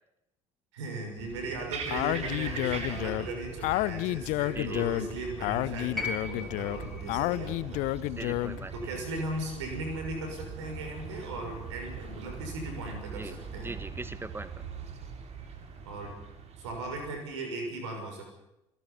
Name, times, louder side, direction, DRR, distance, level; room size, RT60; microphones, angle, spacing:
voice 1, 0.7-7.8 8.7-13.8 15.8-16.1 16.6-18.2, right 2 dB, 70° right, 3 dB, 6.6 m, -37 dB
sound 1, 1.2-17.2, right 5 dB, 45° right, 4.0 m, -42 dB
Speech, 1.9-8.7, left 18 dB, 55° left, 0.7 m, -30 dB
voice 2, 4.5-4.9 8.2-8.7 13.2-13.4 13.6-14.6, right 3 dB, 15° right, 13 dB, 1.7 m, -40 dB
sound 2, 6.0-10.1 11.3-11.4, left 3 dB, ahead, 7.2 m, -41 dB
30.0 x 18.5 x 5.9 m, 0.88 s
figure-of-eight pair, 55°, 15 cm